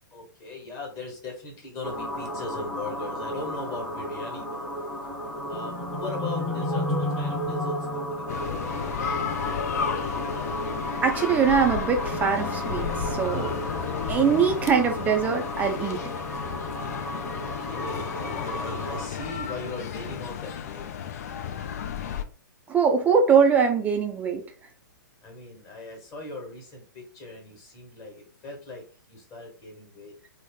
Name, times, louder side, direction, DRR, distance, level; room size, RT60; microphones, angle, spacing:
voice 1, 0.1-4.7 5.5-8.5 17.3-20.9 25.2-30.1, left 2 dB, 30° left, 1.3 m, -39 dB
sound 1, 1.8-19.1, left 1 dB, 5° left, 0.8 m, -32 dB
sound 2, 8.3-22.2, left 8 dB, 45° left, 0.4 m, -33 dB
voice 2, 11.0-13.6 14.1-16.0 22.7-24.4, right 6 dB, 15° right, 0.4 m, -22 dB
3.0 x 2.0 x 3.7 m
figure-of-eight pair, 120°, 11 cm